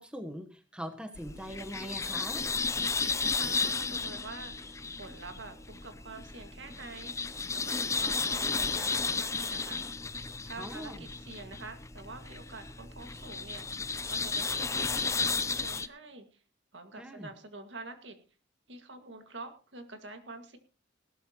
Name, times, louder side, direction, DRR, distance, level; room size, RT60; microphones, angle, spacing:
voice 1, 0.0-2.4 10.6-11.0 17.0-17.3, equal, 5° right, 5 dB, 1.1 m, -41 dB
sound 1, 1.2-15.9, left 4 dB, 15° left, 0.5 m, -33 dB
voice 2, 2.9-9.8 10.5-13.7 14.1-16.3 16.7-18.2 18.7-20.6, right 3 dB, 65° right, 7 dB, 2.1 m, -46 dB
18.0 x 12.5 x 3.0 m, 0.36 s
head